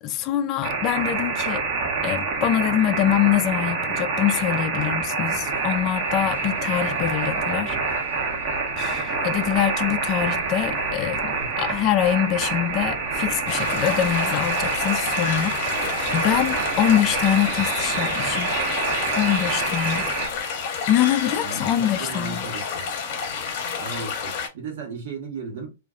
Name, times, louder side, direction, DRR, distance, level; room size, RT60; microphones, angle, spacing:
voice 1, 0.0-1.6 2.0-7.8 8.8-18.6 19.1-20.0 20.9-22.4, left 11 dB, 40° left, 0.3 m, -24 dB
sound 1, 0.6-20.3, right 4 dB, 40° right, 0.8 m, -26 dB
sound 2, 5.3-20.4, equal, 85° right, 0.6 m, -42 dB
sound 3, 13.5-24.5, left 6 dB, 55° left, 0.8 m, -30 dB
voice 2, 21.4-22.9 23.8-25.7, right 5 dB, 65° right, 1.1 m, -35 dB
2.4 x 2.3 x 2.2 m
hypercardioid pair, 115°, 0 cm